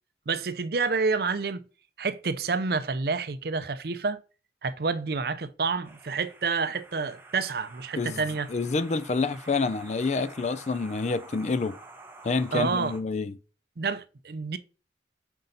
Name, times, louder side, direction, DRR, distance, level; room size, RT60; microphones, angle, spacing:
voice 1, 0.3-1.6 2.0-4.2 4.6-8.5 12.5-12.9 13.8-14.6, right 4 dB, 60° right, 0.5 m, -28 dB
sound 1, 5.8-13.0, right 3 dB, 10° right, 0.8 m, -49 dB
voice 2, 8.5-11.8 12.2-13.4, left 4 dB, 40° left, 0.4 m, -28 dB
5.6 x 5.4 x 3.9 m
head